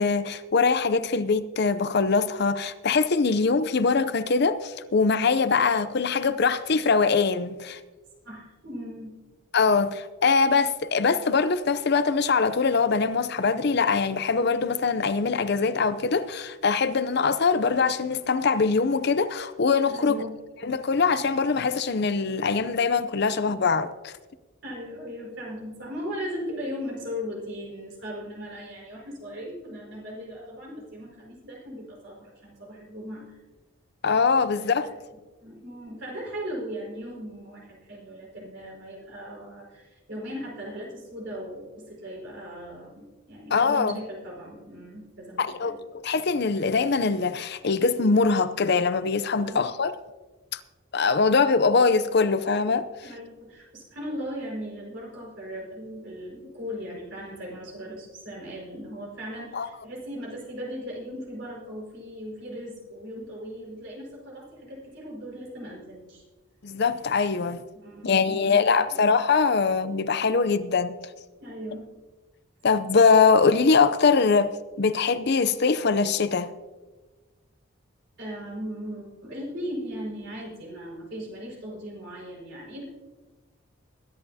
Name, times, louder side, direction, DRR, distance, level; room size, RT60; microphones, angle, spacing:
voice 1, 0.0-7.8 9.5-20.3 20.6-24.1 34.0-34.9 43.5-44.0 45.4-45.7 46.0-49.9 50.5-50.6 50.9-52.9 59.5-59.7 66.6-67.6 68.0-71.0 72.6-74.5 74.8-76.5, left 4 dB, 50° left, 0.6 m, -22 dB
voice 2, 8.2-9.2 19.9-20.4 24.6-33.4 34.5-34.9 35.4-45.8 49.4-49.7 53.0-66.2 67.7-69.0 71.4-71.9 78.2-82.8, equal, 60° right, 5.1 m, -38 dB
22.0 x 11.0 x 2.8 m
head